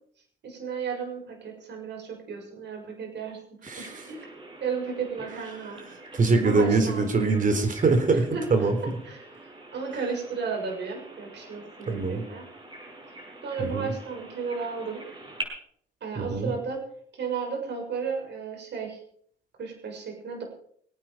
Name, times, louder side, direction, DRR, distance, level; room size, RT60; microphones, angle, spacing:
voice 1, 0.4-3.4 3.8-4.3 4.6-5.8 6.4-7.4 8.1-8.7 9.0-12.4 13.4-15.0 16.0-16.8 17.1-19.0 19.6-20.4, right 5 dB, 60° right, 1 dB, 7.1 m, -34 dB
Bird vocalization bird call bird song, 3.7-15.4, right 2 dB, 25° right, 6.3 m, -45 dB
voice 2, 6.1-8.8 11.9-12.2 13.7-13.9 16.2-16.5, right 3 dB, 40° right, 7 dB, 4.0 m, -23 dB
24.0 x 9.5 x 5.2 m, 0.63 s
cardioid pair, 90°, 20 cm